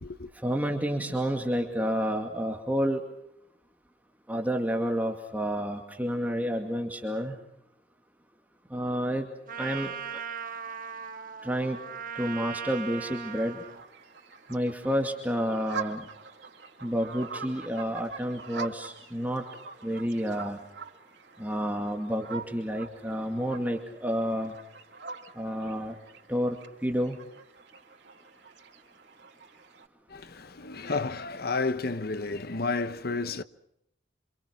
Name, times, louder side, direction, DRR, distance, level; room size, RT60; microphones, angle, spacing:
voice 1, 0.4-3.0 4.3-7.4 8.7-9.3 9.6-10.2 11.4-11.8 12.1-13.6 14.5-16.1 16.8-19.4 19.8-20.6 21.4-24.5 25.4-25.9 26.3-27.2, equal, 10° right, 2.3 m, -30 dB
Trumpet, 9.5-13.8, right 7 dB, 50° right, 1.7 m, -38 dB
sound 1, 12.8-29.9, right 5 dB, 80° right, 3.4 m, -44 dB
voice 2, 30.1-33.4, left 3 dB, 60° left, 1.2 m, -31 dB
27.5 x 26.5 x 6.1 m
head